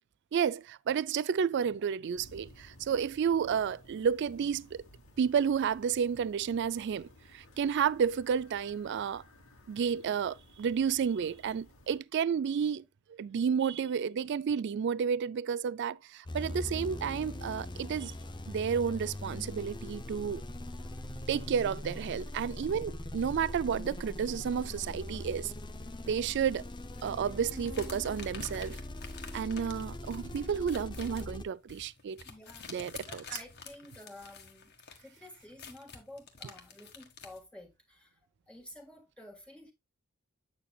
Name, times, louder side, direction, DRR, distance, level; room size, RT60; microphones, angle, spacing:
voice 1, 0.3-4.8 5.2-9.2 9.7-12.8 13.1-18.1 18.5-20.4 21.3-25.5 26.1-26.7 27.0-28.8 29.3-32.2 32.7-33.2, right 7 dB, 55° right, 0.3 m, -31 dB
sound 1, 2.2-12.0, left 1 dB, 75° left, 1.7 m, -57 dB
sound 2, 16.3-31.4, left 1 dB, 20° left, 0.6 m, -41 dB
sound 3, 26.9-37.4, left 5 dB, 50° left, 1.5 m, -49 dB
voice 2, 32.2-34.7 35.0-38.2 38.5-39.7, left 1 dB, 5° left, 1.6 m, -51 dB
8.8 x 6.7 x 2.3 m
head